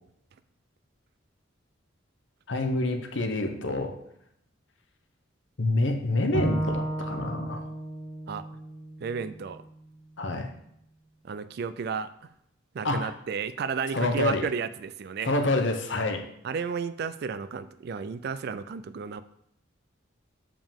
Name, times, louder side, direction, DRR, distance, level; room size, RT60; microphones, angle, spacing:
voice 1, 2.5-4.0 5.6-7.7 10.2-10.5 12.8-13.1 13.9-14.5 15.2-16.3, left 2 dB, 65° left, 6 dB, 0.8 m, -27 dB
Bowed string instrument, 6.3-9.6, right 1 dB, 5° left, 1.5 m, -33 dB
voice 2, 9.0-9.6 11.3-12.1 12.7-15.3 16.4-19.2, right 5 dB, 50° right, 14 dB, 0.3 m, -32 dB
7.2 x 5.0 x 3.6 m, 0.75 s
head